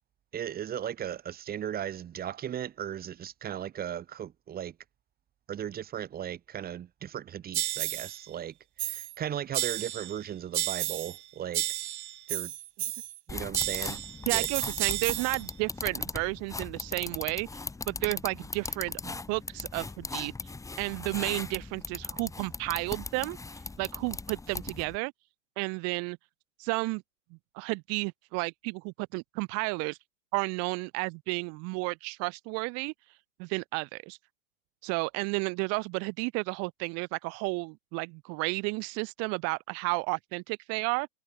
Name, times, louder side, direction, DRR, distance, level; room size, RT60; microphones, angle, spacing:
voice 1, 0.3-4.8 5.5-8.5 8.8-11.7 12.3-12.5 13.3-14.0 14.3-14.5, right 10 dB, 25° right, 3.8 m, -36 dB
sound 1, 7.5-8.2 8.8-9.2 9.5-10.2 10.5-11.2 11.5-13.2 13.5-15.4, right 15 dB, 60° right, 1.5 m, -32 dB
sound 2, 13.3-25.0, left 3 dB, 10° left, 4.1 m, -38 dB
voice 2, 14.3-17.5 17.9-20.3 20.8-23.4 23.8-25.1 25.6-26.2 26.6-27.0 27.5-30.0 30.3-32.9 33.4-34.2 34.8-41.1, right 32 dB, 40° right, 2.4 m, -32 dB
hypercardioid pair, 115°, 38 cm